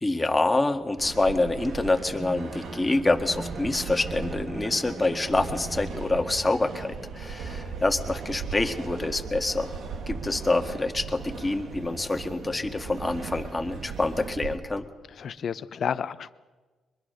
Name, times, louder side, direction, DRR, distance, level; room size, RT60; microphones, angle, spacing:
voice 1, 0.0-9.7 10.1-14.8, left 2 dB, 20° left, 5 dB, 1.8 m, -26 dB
sound 1, 1.0-14.6, right 5 dB, 70° right, 2.3 m, -38 dB
Bowed string instrument, 2.0-6.3, right 3 dB, 50° right, 2.3 m, -39 dB
voice 2, 15.1-16.3, left 7 dB, 60° left, 15 dB, 0.8 m, -31 dB
23.0 x 22.0 x 6.6 m, 1.3 s
cardioid pair, 85°, 0 cm